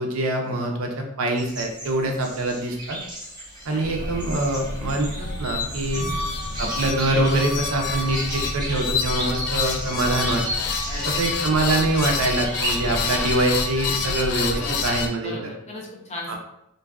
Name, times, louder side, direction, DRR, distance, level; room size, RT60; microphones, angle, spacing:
voice 1, 0.0-3.0 3.7-6.0 6.6-10.4 11.0-15.5 16.3-16.4, right 2 dB, 70° right, 2 dB, 0.5 m, -24 dB
sound 1, 1.3-13.0, right 1 dB, 20° right, 0.6 m, -35 dB
voice 2, 3.7-4.2 5.9-6.2 10.9-11.5 12.8-13.4 14.5-16.3, left 1 dB, 30° left, -3 dB, 0.6 m, -37 dB
sound 2, 3.8-15.1, left 4 dB, 85° left, 0.3 m, -28 dB
2.6 x 2.2 x 2.3 m, 0.81 s
head